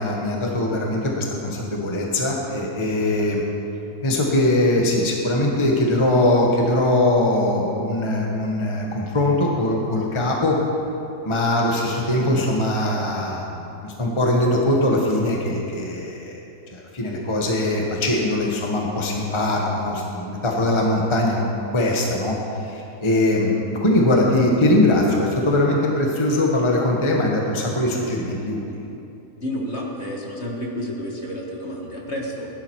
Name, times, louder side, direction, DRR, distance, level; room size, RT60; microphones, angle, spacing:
voice 1, 0.0-3.4 4.0-10.6 11.2-16.4 16.7-23.5 23.8-28.6, left 1 dB, 20° left, -1 dB, 1.3 m, -21 dB
voice 2, 29.4-32.5, equal, 45° left, -1 dB, 1.9 m, -30 dB
16.5 x 11.0 x 4.7 m, 2.8 s
omnidirectional pair, 1.7 m